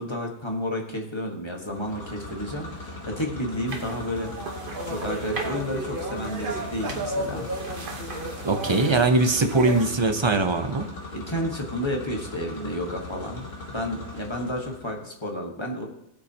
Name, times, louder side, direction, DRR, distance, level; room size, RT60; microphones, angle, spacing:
voice 1, 0.0-4.3 4.8-7.5 8.2-9.0 11.1-15.9, left 1 dB, 25° left, 1 dB, 1.5 m, -31 dB
sound 1, 1.6-15.0, left 2 dB, 85° left, 2.7 m, -39 dB
sound 2, 3.7-9.9, right 2 dB, 45° right, 1.3 m, -33 dB
voice 2, 8.4-10.9, right 3 dB, 30° right, 7 dB, 0.6 m, -21 dB
17.5 x 8.5 x 2.9 m, 0.83 s
omnidirectional pair, 1.3 m